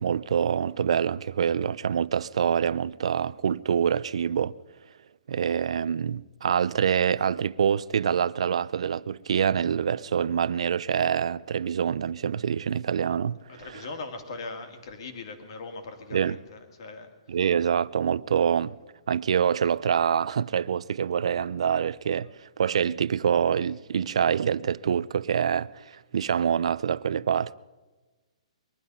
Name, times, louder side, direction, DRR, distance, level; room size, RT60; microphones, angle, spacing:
voice 1, 0.0-4.5 5.3-13.9 16.1-16.4 17.3-18.8 19.1-27.6, right 8 dB, 60° right, 0.4 m, -26 dB
voice 2, 13.6-17.1, left 3 dB, 40° left, 2.1 m, -40 dB
22.0 x 12.0 x 5.5 m
hypercardioid pair, 175°, 4 cm